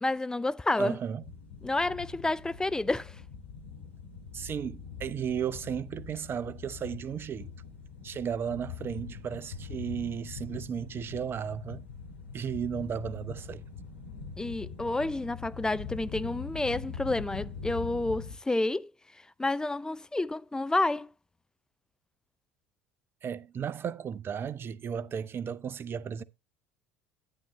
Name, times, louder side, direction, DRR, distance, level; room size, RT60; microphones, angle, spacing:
voice 1, 0.0-1.0 1.6-3.2 14.4-18.9 19.4-21.1, left 2 dB, 10° left, 0.4 m, -30 dB
voice 2, 0.8-1.2 4.3-7.5 8.0-11.9 12.3-13.6 23.2-26.2, right 8 dB, 35° right, 0.7 m, -34 dB
sound 1, 1.2-18.3, left 6 dB, 85° left, 1.9 m, -43 dB
11.0 x 8.7 x 3.0 m
figure-of-eight pair, 65°, 6 cm